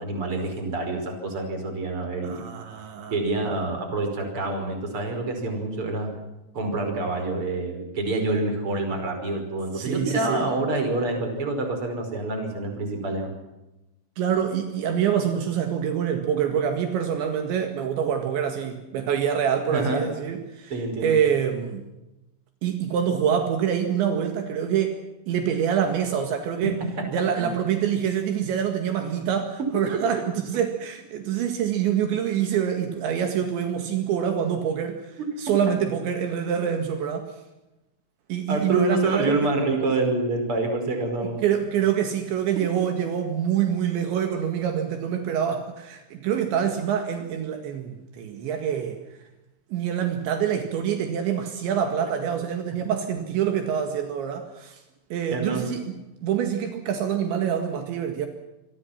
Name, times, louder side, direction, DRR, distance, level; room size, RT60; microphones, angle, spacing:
voice 1, 0.0-2.3 3.1-6.1 6.5-13.3 19.7-20.0 20.7-21.1 27.4-27.6 38.5-41.4 55.3-55.7, right 2 dB, 30° right, 4 dB, 5.8 m, -27 dB
voice 2, 2.2-3.1 9.7-10.5 14.2-21.8 22.6-26.8 27.1-37.4 38.3-39.5 41.4-49.0 49.7-54.8 55.1-55.9 56.2-58.3, right 8 dB, 75° right, 5 dB, 4.2 m, -26 dB
26.5 x 23.5 x 5.9 m, 0.97 s
omnidirectional pair, 5.4 m